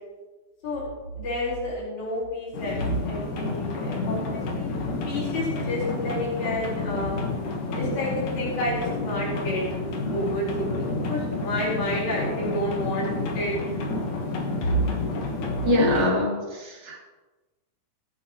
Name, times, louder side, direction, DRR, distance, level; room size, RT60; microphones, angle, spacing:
voice 1, 1.2-4.7 5.1-7.3 7.7-13.7, left 1 dB, 45° left, -6 dB, 5.8 m, -30 dB
sound 1, 2.5-16.1, left 3 dB, 60° left, 2.4 m, -30 dB
voice 2, 15.6-17.0, left 1 dB, 25° right, -5 dB, 3.6 m, -23 dB
22.5 x 8.9 x 3.2 m, 1.2 s
omnidirectional pair, 4.8 m